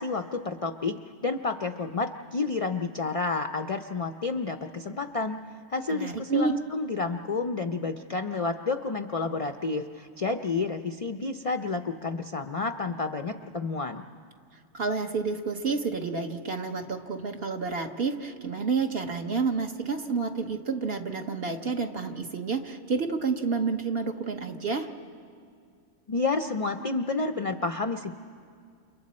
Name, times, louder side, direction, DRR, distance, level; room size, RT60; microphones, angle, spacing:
voice 1, 0.0-5.4 5.7-14.0 26.1-28.1, left 3 dB, 45° left, 7 dB, 0.4 m, -30 dB
voice 2, 5.9-6.5 14.7-24.9, right 4 dB, 50° right, 4 dB, 1.3 m, -29 dB
30.0 x 28.5 x 4.2 m, 2.2 s
omnidirectional pair, 1.3 m